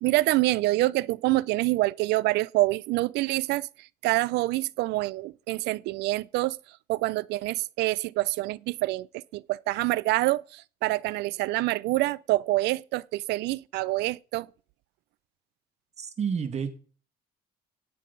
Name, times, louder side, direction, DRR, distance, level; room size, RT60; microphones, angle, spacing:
voice 1, 0.0-6.6 6.9-14.5, right 19 dB, 85° right, 0.5 m, -26 dB
voice 2, 16.0-16.7, right 6 dB, 40° right, 2.1 m, -29 dB
17.5 x 7.4 x 5.3 m
cardioid pair, 110°, 17 cm